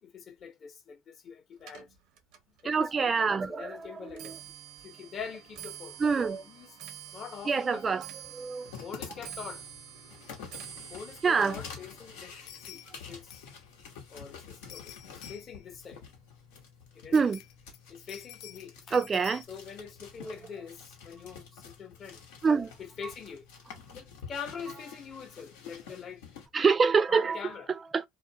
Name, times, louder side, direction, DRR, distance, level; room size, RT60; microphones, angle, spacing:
voice 1, 0.0-1.9 2.6-2.9 3.2-4.4 4.8-6.8 7.1-8.0 8.8-9.6 10.9-12.3 12.6-13.4 14.1-16.0 16.9-17.2 17.9-19.0 19.5-22.2 22.8-23.4 23.9-26.2 27.1-27.7, left 6 dB, 40° left, 0.8 m, -44 dB
Clock, 1.6-14.9 15.3-15.7 16.5-16.6 16.9-17.3 17.6-17.7, right 10 dB, 75° right, 0.6 m, -49 dB
voice 2, 2.6-3.7 6.0-6.4 7.5-8.1 8.3-8.7 11.2-11.6 17.1-17.4 18.9-19.4 22.4-22.7 26.5-27.4 27.9-28.0, right 5 dB, 30° right, 0.3 m, -25 dB
sound 1, 8.6-26.5, left 6 dB, 90° left, 0.9 m, -48 dB
sound 2, 10.2-10.3 10.6-10.7 12.5-13.0 13.3-13.6 14.7-15.7 17.1-19.5, left 12 dB, 70° left, 0.3 m, -49 dB
2.4 x 2.1 x 2.7 m
supercardioid pair, 105°, 0 cm